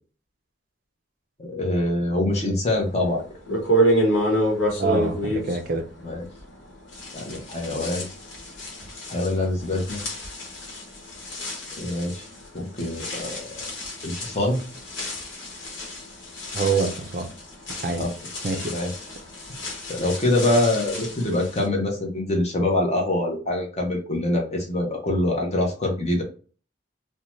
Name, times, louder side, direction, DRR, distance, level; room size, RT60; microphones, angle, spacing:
voice 1, 1.4-3.2 6.0-6.3 7.1-8.1 9.1-10.0 11.7-12.3 12.5-13.5 14.0-14.6 18.0-18.1 18.7-18.9 19.6-26.2, left 1 dB, 35° left, 0.7 m, -25 dB
sound 1, 2.9-3.0 3.5-6.6 6.9-21.6, right 1 dB, 80° left, 1.1 m, -29 dB
voice 2, 4.8-5.8 16.5-17.3 17.8-18.1 18.4-18.7, right 4 dB, 45° right, 0.4 m, -25 dB
2.6 x 2.2 x 3.0 m
head